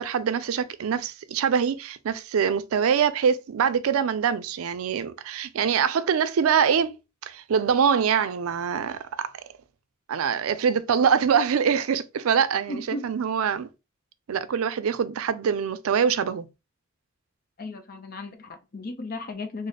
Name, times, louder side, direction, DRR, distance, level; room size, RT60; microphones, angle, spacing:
voice 1, 0.0-9.3 10.1-13.7 14.3-16.5, right 7 dB, 85° right, 0.4 m, -24 dB
voice 2, 12.7-13.1 17.6-19.7, left 2 dB, 45° left, 0.6 m, -35 dB
3.3 x 2.0 x 3.8 m
head